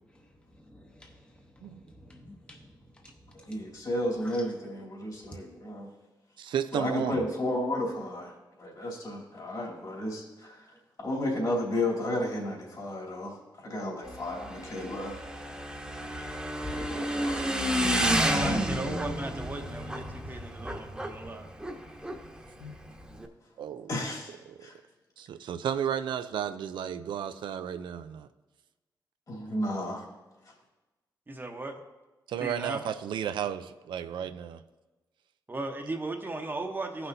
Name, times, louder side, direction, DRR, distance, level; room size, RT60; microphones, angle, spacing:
voice 1, 0.5-3.6 4.2-4.4, left 1 dB, 15° left, 2 dB, 0.9 m, -53 dB
voice 2, 3.3-5.9 6.7-10.7 11.0-15.2 16.0-16.1 16.6-17.6 18.4-18.8 22.6-22.7 23.9-24.8 29.3-30.0 30.4-30.5, left 1 dB, 55° left, -3 dB, 2.9 m, -33 dB
voice 3, 6.4-7.2 23.6-23.9 24.6-24.7 25.2-28.3 32.3-34.6, right 9 dB, 90° right, 11 dB, 0.4 m, -33 dB
Motorcycle / Engine, 14.0-23.3, equal, 10° right, 1.0 m, -31 dB
voice 4, 18.2-21.5 31.3-31.8 32.4-32.8 35.5-37.1, right 2 dB, 25° right, 4 dB, 0.9 m, -36 dB
15.0 x 5.9 x 2.7 m, 1.2 s
cardioid pair, 75°, 8 cm